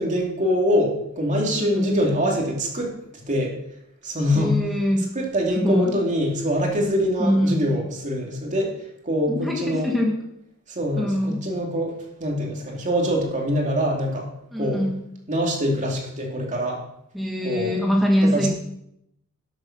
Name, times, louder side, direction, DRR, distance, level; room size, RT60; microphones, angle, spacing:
voice 1, 0.0-3.6 4.0-4.7 5.1-8.8 9.0-9.9 10.7-14.9 15.3-16.8 17.4-17.7 18.2-18.5, equal, 35° right, 0 dB, 2.7 m, -24 dB
voice 2, 1.5-2.0 4.3-5.1 5.5-5.9 7.2-7.6 9.3-10.2 11.0-11.4 14.5-15.0 17.1-18.5, equal, ahead, -2 dB, 1.5 m, -23 dB
12.5 x 7.9 x 6.0 m, 0.79 s
head